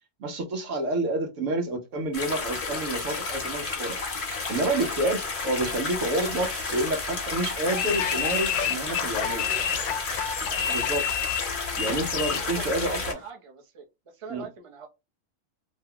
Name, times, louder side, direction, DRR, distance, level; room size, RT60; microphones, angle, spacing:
voice 1, 0.2-4.0 4.5-9.5 10.7-11.1 11.8-13.2 14.3-14.5, right 2 dB, 70° right, 1.1 m, -29 dB
sound 1, 2.1-13.1, left 4 dB, 45° left, 1.0 m, -32 dB
sound 2, 3.3-5.1 5.5-5.6 6.1-7.2 7.7-8.7 9.4-9.9, right 4 dB, 50° right, 1.0 m, -46 dB
sound 3, 7.7-12.5, left 9 dB, 70° left, 0.9 m, -29 dB
voice 2, 9.2-9.8 10.4-10.7 12.4-14.9, right 6 dB, 30° right, 0.6 m, -43 dB
2.9 x 2.2 x 3.6 m
omnidirectional pair, 1.4 m